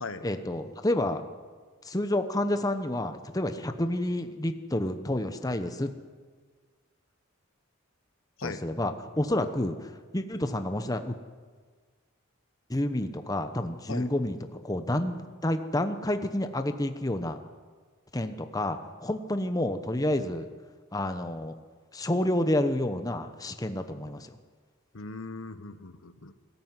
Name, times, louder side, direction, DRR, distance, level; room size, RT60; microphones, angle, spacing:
voice 1, 0.2-1.2 1.8-5.9 8.4-11.1 12.7-17.4 18.1-20.5 20.9-21.5 21.9-24.3, left 1 dB, 15° left, 8 dB, 0.9 m, -29 dB
voice 2, 24.9-26.3, left 3 dB, 70° left, 11 dB, 1.2 m, -38 dB
22.0 x 13.5 x 9.6 m, 1.5 s
head